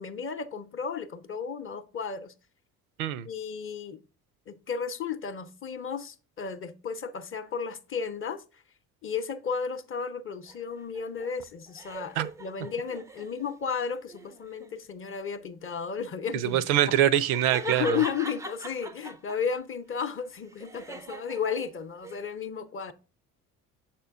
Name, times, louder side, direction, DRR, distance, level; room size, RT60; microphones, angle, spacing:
voice 1, 0.0-2.3 3.3-4.0 4.5-8.6 9.0-17.0 17.6-22.9, left 6 dB, 30° left, 0.6 m, -33 dB
sound 1, 10.5-13.6 14.1-14.7 16.5-19.6 20.0-22.2, right 3 dB, 10° right, 0.3 m, -42 dB
voice 2, 16.3-18.0, right 11 dB, 80° right, 0.5 m, -24 dB
6.6 x 4.4 x 3.5 m
hypercardioid pair, 55°, 44 cm